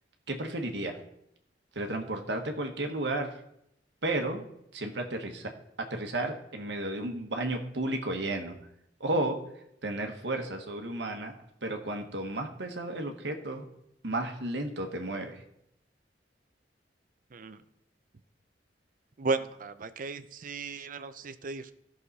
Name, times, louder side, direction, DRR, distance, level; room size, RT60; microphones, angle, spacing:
voice 1, 0.3-1.0 1.7-3.4 4.0-4.4 4.7-5.5 5.8-8.5 9.0-9.4 9.8-11.3 11.6-13.7 14.0-15.4, right 2 dB, 70° right, 4 dB, 1.3 m, -33 dB
voice 2, 19.2-21.7, right 3 dB, 50° right, 11 dB, 0.6 m, -34 dB
13.5 x 6.4 x 4.1 m, 0.78 s
head